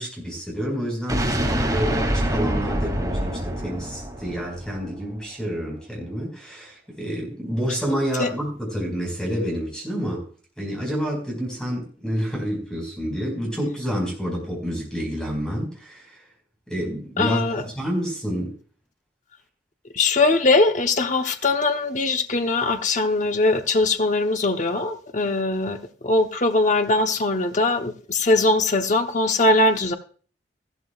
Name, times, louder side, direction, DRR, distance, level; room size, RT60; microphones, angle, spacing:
voice 1, 0.0-10.2 10.6-16.2 16.7-18.5, equal, 5° left, 4.8 m, -28 dB
sound 1, 1.1-5.0, equal, 20° right, 2.4 m, -25 dB
voice 2, 17.2-17.6 19.9-29.9, left 2 dB, 45° left, 0.9 m, -21 dB
14.5 x 12.5 x 2.4 m
head